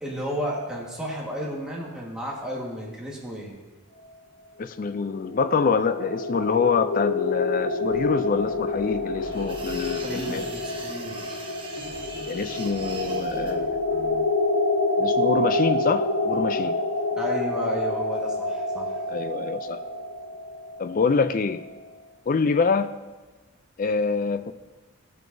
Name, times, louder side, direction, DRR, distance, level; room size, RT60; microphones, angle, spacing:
voice 1, 0.0-3.5 10.0-11.4 17.1-19.0, equal, 5° right, 1.5 m, -32 dB
voice 2, 4.6-10.4 12.3-13.8 15.0-16.8 19.1-19.8 20.8-21.6 22.3-22.9 23.8-24.5, left 5 dB, 40° left, 0.3 m, -25 dB
sound 1, 4.8-21.7, left 2 dB, 85° left, 0.9 m, -27 dB
sound 2, 7.6-14.2, equal, 80° right, 2.3 m, -44 dB
sound 3, 9.2-13.5, right 3 dB, 25° right, 0.9 m, -41 dB
13.5 x 7.7 x 2.6 m
head